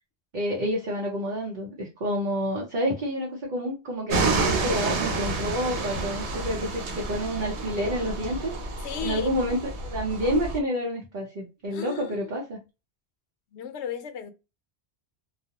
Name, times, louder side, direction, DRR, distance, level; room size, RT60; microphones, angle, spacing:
voice 1, 0.3-8.5 9.0-12.6, equal, 50° right, 0.7 m, -29 dB
sound 1, 4.1-10.6, right 3 dB, 80° right, 0.9 m, -29 dB
voice 2, 8.8-9.3 11.7-12.3 13.5-14.3, left 9 dB, 80° left, 0.9 m, -35 dB
2.3 x 2.1 x 2.8 m
omnidirectional pair, 1.1 m